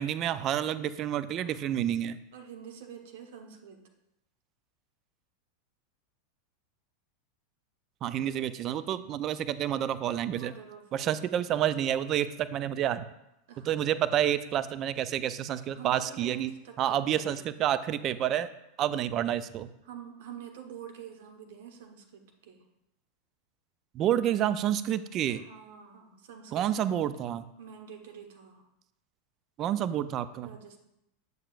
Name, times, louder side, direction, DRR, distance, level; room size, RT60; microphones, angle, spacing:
voice 1, 0.0-2.2 8.0-10.5 10.9-13.0 13.7-16.5 16.8-18.5 18.8-19.7 23.9-25.4 26.5-27.5 29.6-30.5, right 11 dB, 40° right, 14 dB, 0.4 m, -29 dB
voice 2, 1.4-2.0 2.3-3.8 10.3-11.6 13.5-13.9 15.7-17.6 19.8-22.6 25.3-26.7 27.6-28.6 30.4-30.8, right 8 dB, 65° right, 4 dB, 1.2 m, -46 dB
7.8 x 7.2 x 2.5 m, 0.86 s
hypercardioid pair, 90°, 0 cm